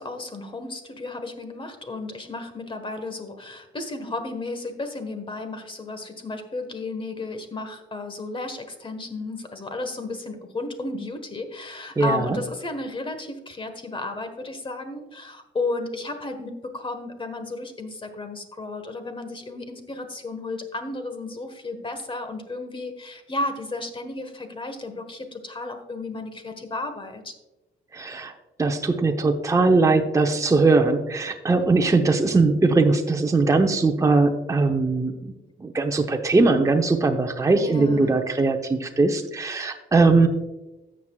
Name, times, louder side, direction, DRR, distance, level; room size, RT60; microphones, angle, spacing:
voice 1, 0.0-27.3 31.5-31.9 37.5-38.2, left 2 dB, 25° left, 8 dB, 1.3 m, -33 dB
voice 2, 12.0-12.4 27.9-28.3 28.6-35.3 35.6-40.3, right 3 dB, 15° right, 3 dB, 0.8 m, -20 dB
13.0 x 7.5 x 2.3 m, 1.0 s
cardioid pair, 90°, 20 cm